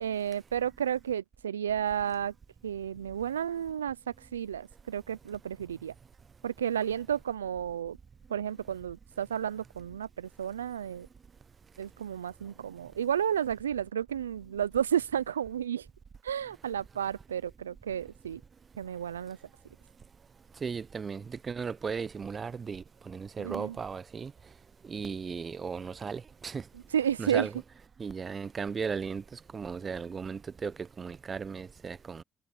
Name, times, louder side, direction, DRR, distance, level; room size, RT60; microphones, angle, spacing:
voice 1, 0.0-2.3 2.6-5.9 6.4-8.0 8.3-11.1 11.8-15.9 16.2-18.4 18.8-19.4 23.4-23.7 26.9-27.5, right 9 dB, 90° right, 0.4 m, -32 dB
voice 2, 20.6-24.3 24.8-26.6 27.2-27.6 28.0-32.2, right 5 dB, 45° right, 1.0 m, -36 dB
hypercardioid pair, 45°, 0 cm